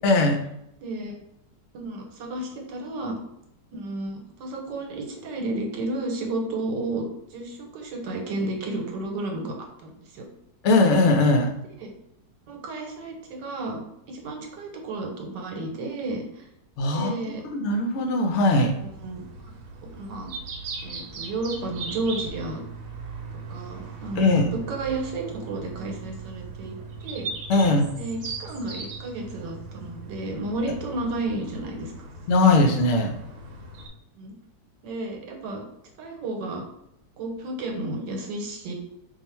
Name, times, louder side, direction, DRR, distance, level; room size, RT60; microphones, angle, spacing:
voice 1, 0.0-0.4 10.6-11.5 16.8-17.1 17.5-18.7 24.2-24.5 27.5-27.9 32.3-33.1, left 2 dB, 70° left, 3 dB, 0.7 m, -20 dB
voice 2, 0.8-1.2 1.7-3.1 3.7-7.1 7.3-9.5 9.8-10.2 11.8-11.9 12.5-16.2 16.9-17.5 19.0-19.2 19.9-20.3 20.8-22.6 23.5-26.8 27.0-27.3 27.9-31.9 34.2-34.3 34.8-35.6 36.0-36.6 37.2-38.7, right 2 dB, 85° right, 2 dB, 1.4 m, -32 dB
sound 1, 18.3-33.9, right 4 dB, 70° right, 1.2 m, -39 dB
2.8 x 2.4 x 4.2 m, 0.80 s
omnidirectional pair, 1.8 m